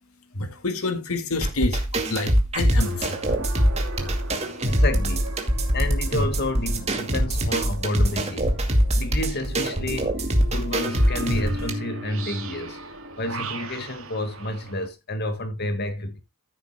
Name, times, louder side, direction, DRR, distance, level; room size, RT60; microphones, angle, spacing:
voice 1, 0.3-3.2, left 3 dB, 75° left, 1.9 m, -28 dB
sound 1, 1.4-11.7, right 1 dB, 30° right, 2.2 m, -23 dB
sound 2, 2.8-14.9, right 2 dB, 65° right, 2.7 m, -39 dB
voice 2, 4.7-5.3 5.7-8.6 8.9-12.8 13.2-16.2, left 1 dB, 50° left, 2.1 m, -30 dB
15.0 x 7.8 x 2.2 m
head